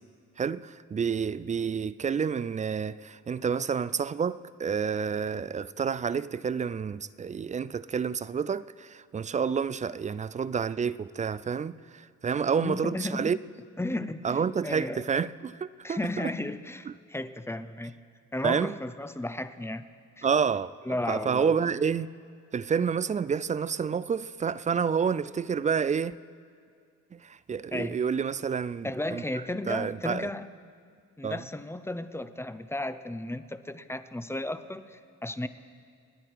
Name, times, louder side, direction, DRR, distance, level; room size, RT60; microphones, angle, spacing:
voice 1, 0.4-13.4 14.2-16.3 18.4-18.7 20.2-20.7 21.1-22.1 22.5-26.1 27.1-29.2 29.7-30.3 31.2-31.4, right 6 dB, 25° right, 0.3 m, -29 dB
voice 2, 12.6-13.3 13.8-15.0 15.8-17.9 18.3-19.9 20.2-20.3 20.8-21.5 27.7-28.0 28.8-30.5 31.2-35.5, left 1 dB, 10° left, 0.6 m, -34 dB
27.5 x 10.0 x 4.7 m
cardioid pair, 90°, 30 cm